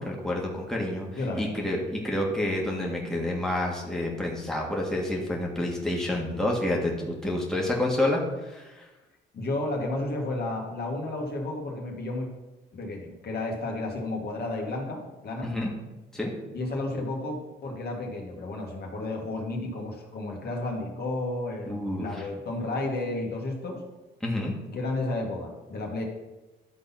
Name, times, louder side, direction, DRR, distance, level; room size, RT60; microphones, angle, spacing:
voice 1, 0.0-8.9 15.4-15.7 16.1-16.3 21.7-22.3 24.2-24.5, left 1 dB, 5° left, -2 dB, 1.9 m, -29 dB
voice 2, 1.2-1.5 9.3-12.3 12.7-15.5 16.5-23.8 24.7-26.0, left 2 dB, 55° left, -1 dB, 2.2 m, -32 dB
12.0 x 4.0 x 5.9 m, 1.1 s
cardioid pair, 90°, 20 cm